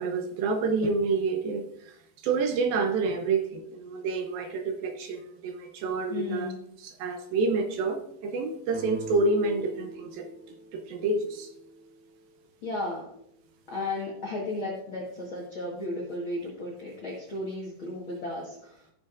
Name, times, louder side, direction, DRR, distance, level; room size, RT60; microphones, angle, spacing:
voice 1, 0.0-6.5 6.8-10.3 10.7-11.5, right 3 dB, 75° right, 5 dB, 2.3 m, -28 dB
voice 2, 6.1-6.6 12.6-13.1 13.7-18.8, left 2 dB, 65° left, -3 dB, 1.3 m, -34 dB
sound 1, 8.7-12.3, right 1 dB, 5° right, 1.2 m, -43 dB
15.5 x 6.7 x 2.5 m, 0.75 s
omnidirectional pair, 4.6 m